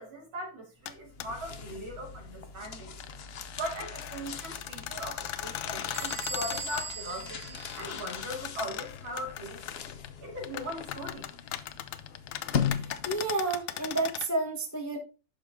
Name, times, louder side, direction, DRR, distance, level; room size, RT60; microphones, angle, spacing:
voice 1, 0.0-3.0 3.5-9.6 10.2-11.3, equal, 80° right, 1 dB, 3.4 m, -39 dB
sound 1, 0.9-1.0 1.2-1.3 2.8-6.9 7.5-10.1 10.4-14.3, left 12 dB, 85° left, 1.4 m, -39 dB
sound 2, 0.9-13.5, left 7 dB, 65° left, 0.6 m, -39 dB
Bell / Squeak, 5.9-8.5, right 4 dB, 65° right, 2.2 m, -40 dB
voice 2, 12.8-15.0, right 3 dB, 10° left, 3 dB, 1.0 m, -31 dB
11.5 x 5.1 x 3.6 m, 0.32 s
omnidirectional pair, 2.1 m